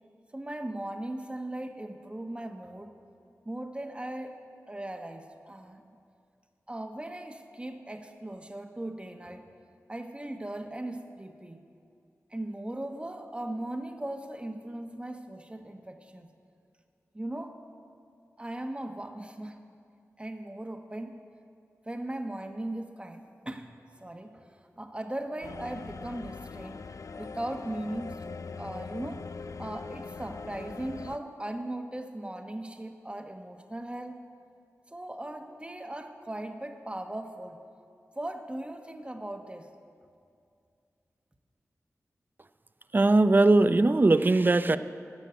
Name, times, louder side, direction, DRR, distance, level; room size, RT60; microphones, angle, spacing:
voice 1, 0.3-3.0 3.4-4.3 4.7-5.8 6.7-9.4 9.9-11.6 12.3-16.3 17.1-17.6 18.4-19.6 20.2-21.2 21.8-23.7 24.0-26.8 27.2-29.2 29.6-34.2 34.9-37.6 38.1-39.7, right 1 dB, 20° right, 6 dB, 1.1 m, -38 dB
sound 1, 25.4-31.2, left 4 dB, 65° left, 0.4 m, -41 dB
voice 2, 42.9-44.8, right 2 dB, 35° right, 12 dB, 0.5 m, -20 dB
12.5 x 6.3 x 9.4 m, 2.4 s
cardioid pair, 45°, 6 cm